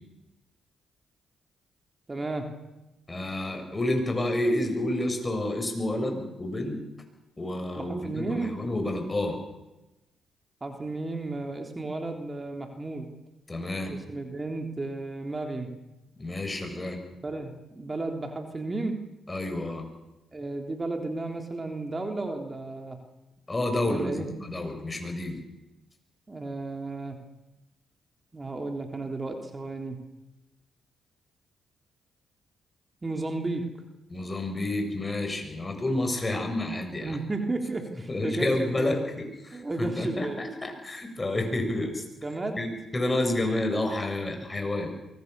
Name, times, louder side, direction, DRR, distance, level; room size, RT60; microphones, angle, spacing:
voice 1, 2.1-2.5 7.8-8.5 10.6-13.1 13.8-15.7 17.2-19.0 20.3-23.0 23.9-24.3 26.3-27.2 28.3-30.0 33.0-33.7 37.0-39.0 39.5-40.4 42.2-42.6, right 2 dB, 30° right, 4 dB, 3.7 m, -33 dB
voice 2, 3.1-6.8 7.4-9.4 13.5-13.9 16.2-17.0 19.3-19.9 23.5-25.4 34.1-37.2 38.1-42.0 42.6-42.7 42.9-44.9, left 1 dB, 25° left, 5 dB, 7.3 m, -29 dB
23.5 x 22.5 x 7.0 m, 0.99 s
hypercardioid pair, 50°, 0 cm